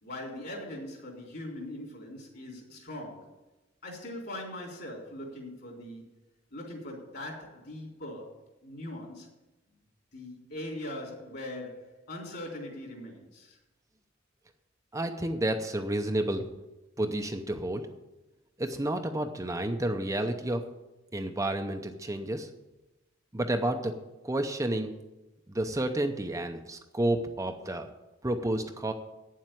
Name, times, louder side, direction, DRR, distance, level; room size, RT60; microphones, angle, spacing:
voice 1, 0.0-3.3 3.8-6.1 6.5-9.3 10.1-13.6, left 1 dB, 55° left, 0 dB, 3.7 m, -41 dB
voice 2, 14.9-16.4 17.0-17.8 18.6-20.6 21.1-22.5 23.3-23.9 24.2-24.9 25.5-27.9 28.2-28.9, right 1 dB, 15° right, 5 dB, 0.6 m, -30 dB
9.3 x 7.5 x 9.1 m, 1.0 s
head